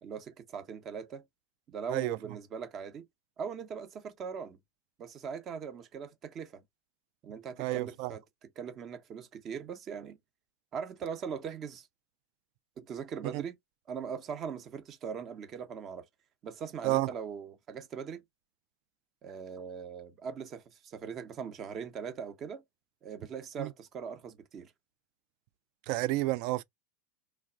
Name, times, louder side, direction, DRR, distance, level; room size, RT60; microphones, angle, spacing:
voice 1, 0.0-1.2 1.7-3.1 3.4-4.6 5.0-6.6 7.2-10.2 10.7-11.9 12.8-13.6 13.9-16.0 16.4-18.2 19.2-22.6 23.0-24.7, right 6 dB, 40° right, 0.8 m, -40 dB
voice 2, 7.6-8.1 13.3-13.4 16.8-17.1 23.6-23.7 25.9-26.6, right 17 dB, 60° right, 0.3 m, -30 dB
3.2 x 2.2 x 2.3 m
hypercardioid pair, 100°, 0 cm